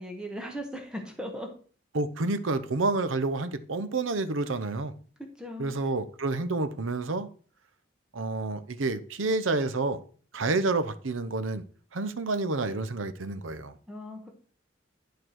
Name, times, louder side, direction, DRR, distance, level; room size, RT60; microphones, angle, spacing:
voice 1, 0.0-1.5 5.4-5.7 13.9-14.3, equal, 5° right, 2 dB, 1.3 m, -38 dB
voice 2, 1.9-4.9 5.6-7.3 8.1-10.0 10.3-11.6 11.9-13.7, right 3 dB, 85° right, 13 dB, 0.8 m, -29 dB
11.0 x 4.7 x 4.6 m, 0.43 s
head